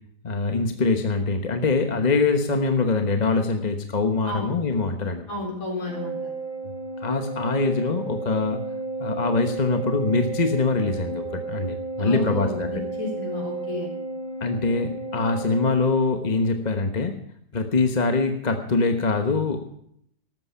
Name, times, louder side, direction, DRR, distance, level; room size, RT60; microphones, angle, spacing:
voice 1, 0.2-5.4 7.0-8.6 9.0-12.8 14.4-17.2 17.5-19.7, left 3 dB, 30° left, 6 dB, 1.0 m, -23 dB
voice 2, 5.3-6.3 12.0-13.9, left 2 dB, 55° left, -2 dB, 4.5 m, -32 dB
Organ, 5.8-16.6, right 3 dB, 65° right, 5.2 m, -33 dB
14.0 x 12.5 x 5.6 m, 0.71 s
omnidirectional pair, 1.8 m